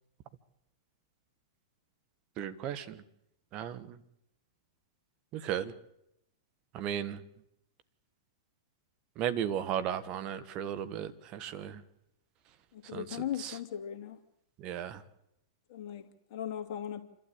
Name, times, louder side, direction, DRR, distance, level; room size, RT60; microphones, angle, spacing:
voice 1, 2.4-3.0 3.5-4.0 5.3-5.7 6.7-7.2 9.2-11.8 12.9-13.6 14.6-15.0, right 9 dB, 40° right, 12 dB, 1.5 m, -35 dB
voice 2, 12.7-14.2 15.7-17.0, left 10 dB, 50° left, 7 dB, 2.3 m, -38 dB
28.0 x 12.5 x 8.8 m, 0.81 s
hypercardioid pair, 105°, 2 cm